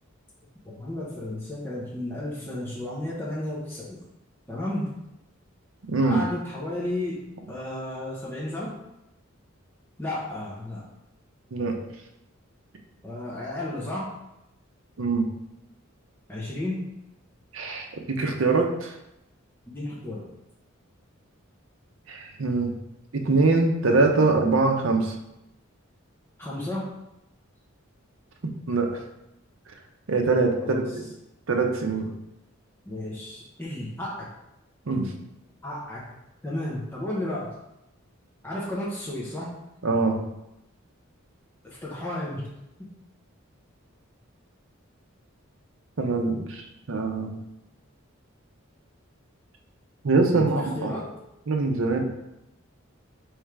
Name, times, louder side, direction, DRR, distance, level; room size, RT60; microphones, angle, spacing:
voice 1, 0.6-4.0 4.5-5.0 6.0-8.8 10.0-10.8 13.0-14.1 16.3-16.8 19.7-20.2 26.4-26.9 30.6-30.9 32.9-34.3 35.6-36.1 36.4-37.5 38.4-39.5 41.6-42.5 42.8-42.9 50.3-51.1, left 1 dB, 10° left, -6 dB, 0.7 m, -33 dB
voice 2, 5.9-6.2 11.5-11.8 15.0-15.3 17.5-18.9 22.1-22.7 23.1-25.1 28.7-28.9 30.1-31.0 31.5-32.1 34.9-35.1 39.8-40.2 46.0-47.4 50.0-51.0 51.5-52.0, right 3 dB, 70° right, 3 dB, 0.6 m, -23 dB
3.6 x 3.2 x 4.6 m, 0.88 s
head